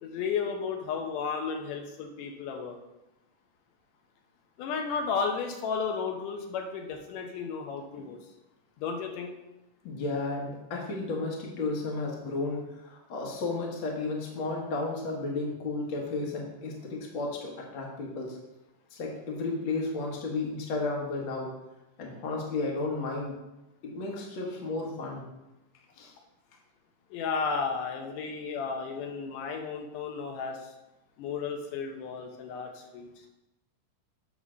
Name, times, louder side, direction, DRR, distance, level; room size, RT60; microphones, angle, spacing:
voice 1, 0.0-2.8 4.6-8.2 8.8-9.3 27.1-30.7 31.2-33.3, left 5 dB, 80° left, 3 dB, 2.3 m, -33 dB
voice 2, 9.8-18.4 18.9-21.5 22.0-23.4 23.8-25.2 26.0-26.1, left 3 dB, 50° left, -1 dB, 1.7 m, -33 dB
8.2 x 3.8 x 6.2 m, 0.96 s
omnidirectional pair, 3.7 m